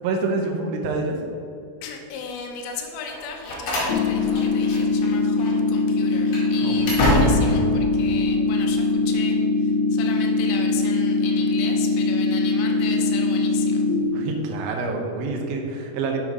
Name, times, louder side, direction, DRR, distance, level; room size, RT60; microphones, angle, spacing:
voice 1, 0.0-1.2 6.6-7.4 14.1-16.2, right 3 dB, 75° right, 1 dB, 2.3 m, -27 dB
voice 2, 1.8-13.8, left 6 dB, 90° left, 2 dB, 3.1 m, -36 dB
Slam, 3.1-5.1 5.4-5.6 6.1-7.7, left 1 dB, 55° left, 3.4 m, -25 dB
sound 1, 3.9-13.9, left 3 dB, 70° left, 3.0 m, -22 dB
7.6 x 6.0 x 4.8 m, 2.6 s
omnidirectional pair, 5.0 m